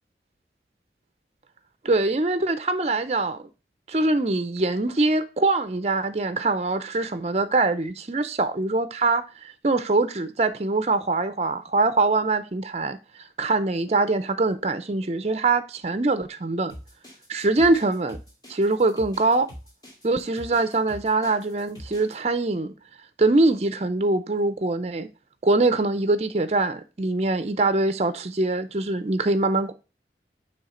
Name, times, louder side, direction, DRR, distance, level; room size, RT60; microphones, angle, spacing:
voice 1, 1.8-3.4 3.9-13.0 13.4-16.7 17.3-18.2 18.5-19.5 20.0-22.7 23.2-25.1 25.4-29.7, right 3 dB, 35° right, 0.5 m, -23 dB
sound 1, 16.7-22.2, equal, 20° left, 2.2 m, -44 dB
7.2 x 3.2 x 4.9 m
head